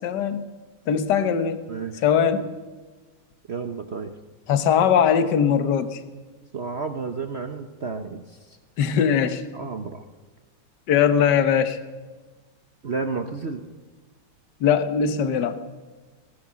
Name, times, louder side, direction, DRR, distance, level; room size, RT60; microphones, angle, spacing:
voice 1, 0.0-0.4 0.9-1.6 2.0-2.5 4.5-6.0 8.8-9.4 10.9-11.8 14.6-15.6, left 8 dB, 60° left, 10 dB, 1.6 m, -20 dB
voice 2, 1.7-2.0 3.5-4.1 6.5-8.6 9.5-10.0 12.8-13.6, right 4 dB, 50° right, 7 dB, 0.8 m, -31 dB
19.5 x 18.0 x 7.5 m, 1.3 s
omnidirectional pair, 2.3 m